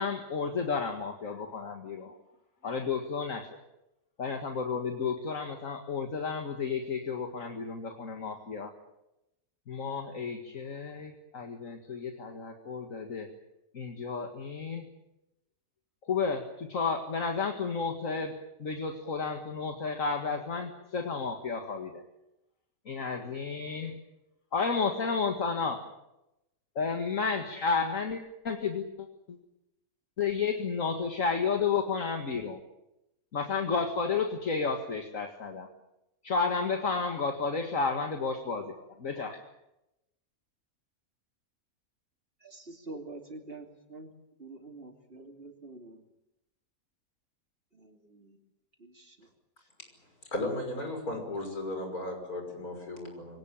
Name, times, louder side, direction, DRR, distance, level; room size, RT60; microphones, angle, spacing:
voice 1, 0.0-2.1 2.6-3.5 4.2-8.7 9.7-13.3 13.7-14.8 16.1-18.3 18.6-22.0 22.9-23.9 24.5-25.8 26.8-29.4 30.2-32.6 33.3-35.7 36.2-38.7 39.0-39.4, left 5 dB, 65° left, 4 dB, 2.3 m, -32 dB
voice 2, 42.4-44.1 44.4-46.0 47.7-48.4 48.8-49.3, right 2 dB, 40° right, 3 dB, 3.2 m, -46 dB
voice 3, 50.3-53.4, left 1 dB, 85° left, 4 dB, 6.4 m, -35 dB
24.5 x 18.0 x 9.0 m, 0.90 s
omnidirectional pair, 1.5 m